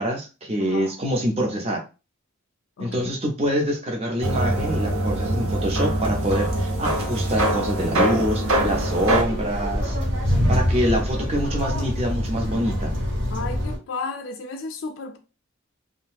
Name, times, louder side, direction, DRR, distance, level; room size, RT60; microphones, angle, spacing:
voice 1, 0.0-1.8 2.8-10.0 10.5-12.9, equal, 30° right, 0.6 m, -25 dB
voice 2, 0.6-1.0 2.8-3.1 13.3-15.2, left 4 dB, 65° left, 0.4 m, -33 dB
sound 1, 4.2-9.2, right 1 dB, 85° right, 0.7 m, -23 dB
sound 2, 8.5-13.8, equal, 55° right, 1.1 m, -25 dB
2.6 x 2.2 x 3.4 m
head